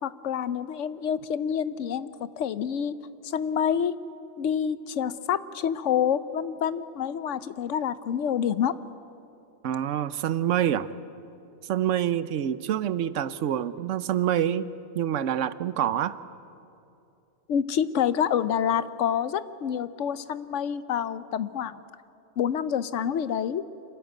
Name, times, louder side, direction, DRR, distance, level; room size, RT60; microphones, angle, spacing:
voice 1, 0.0-2.1 2.4-3.0 3.2-4.0 4.4-8.7 17.5-21.8 22.4-23.6, left 8 dB, 80° left, 15 dB, 1.0 m, -27 dB
voice 2, 9.6-10.9 11.6-14.7 14.9-16.2, right 10 dB, 85° right, 15 dB, 1.0 m, -26 dB
26.0 x 14.0 x 9.3 m, 2.8 s
omnidirectional pair, 1.2 m